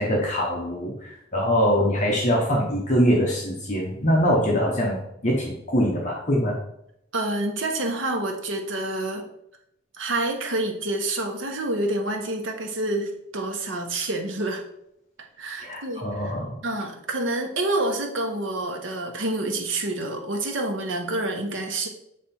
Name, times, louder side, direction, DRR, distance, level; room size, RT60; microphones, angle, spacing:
voice 1, 0.0-6.6 15.6-16.5, equal, 40° left, -2 dB, 1.0 m, -23 dB
voice 2, 7.1-9.2 10.0-14.6 15.4-16.3 16.6-21.9, right 2 dB, 80° right, 3 dB, 1.1 m, -28 dB
7.4 x 3.3 x 4.3 m, 0.77 s
head